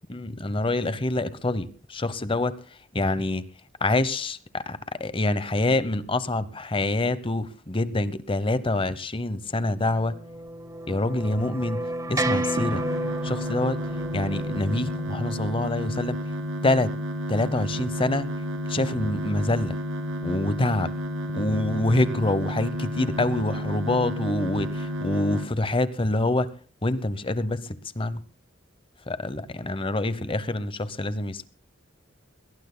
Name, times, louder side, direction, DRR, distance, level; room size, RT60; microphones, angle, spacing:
voice 1, 0.1-2.6 2.9-3.4 3.8-10.2 10.9-11.8 12.1-12.8 13.2-13.8 14.1-16.2 16.6-16.9 17.3-18.3 18.7-19.8 20.2-20.9 21.3-26.5 26.8-28.2 29.1-31.5, left 2 dB, 30° left, 0.9 m, -26 dB
sound 1, 10.1-15.6, right 1 dB, 15° right, 1.1 m, -32 dB
sound 2, 12.6-25.5, equal, 85° right, 1.9 m, -31 dB
21.5 x 19.0 x 2.2 m
head